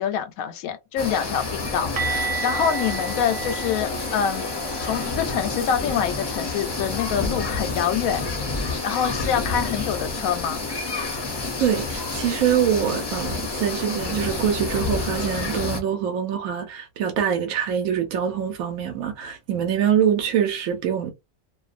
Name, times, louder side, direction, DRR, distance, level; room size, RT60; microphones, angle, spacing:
voice 1, 0.0-4.5 4.8-8.3 8.6-10.6, left 8 dB, 90° left, 1.0 m, -26 dB
sound 1, 1.0-15.8, left 3 dB, 30° left, 0.4 m, -29 dB
sound 2, 2.0-7.7 8.0-8.3 8.6-8.8 12.0-12.1, right 5 dB, 50° right, 0.8 m, -34 dB
voice 2, 11.6-21.1, right 9 dB, 80° right, 1.1 m, -24 dB
2.5 x 2.2 x 2.4 m
omnidirectional pair, 1.4 m